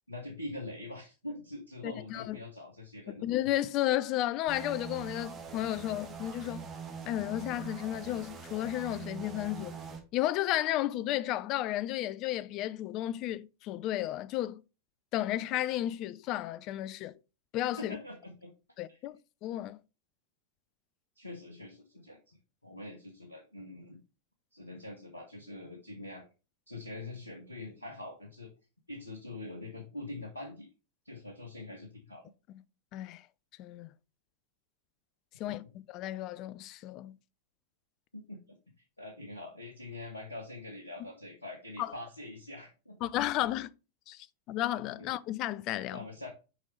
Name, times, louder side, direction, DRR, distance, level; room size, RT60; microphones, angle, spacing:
voice 1, 0.1-3.2 17.8-18.5 18.9-19.0 21.2-24.0 24.5-26.3 26.7-28.5 28.9-30.7 31.0-32.2 35.5-35.6 38.1-38.4 39.0-43.1 45.0-45.1 45.9-46.3, left 2 dB, 80° left, 1.2 m, -44 dB
voice 2, 1.8-2.4 3.2-6.7 7.1-9.8 10.1-14.6 15.1-17.2 17.5-18.0 18.8-19.8 32.9-33.3 33.6-33.9 35.4-35.6 35.9-37.2 41.8-41.9 43.0-43.7 44.1-46.0, left 14 dB, 40° left, 0.5 m, -33 dB
sound 1, 4.5-10.0, right 6 dB, 20° right, 1.8 m, -43 dB
6.3 x 5.2 x 3.2 m
figure-of-eight pair, 90°, 0 cm